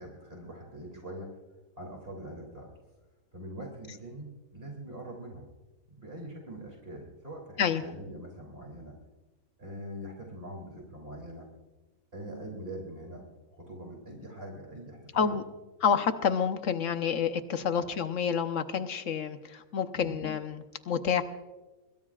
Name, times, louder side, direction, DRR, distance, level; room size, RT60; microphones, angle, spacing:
voice 1, 0.0-1.3 1.8-2.7 3.3-5.4 6.0-9.0 9.6-11.5 12.1-13.2 13.5-15.4 17.7-17.9 19.9-20.2, right 1 dB, 40° right, -1 dB, 3.2 m, -43 dB
voice 2, 15.8-21.2, left 7 dB, 65° left, 9 dB, 1.3 m, -28 dB
26.5 x 21.5 x 2.4 m, 1.2 s
omnidirectional pair, 1.4 m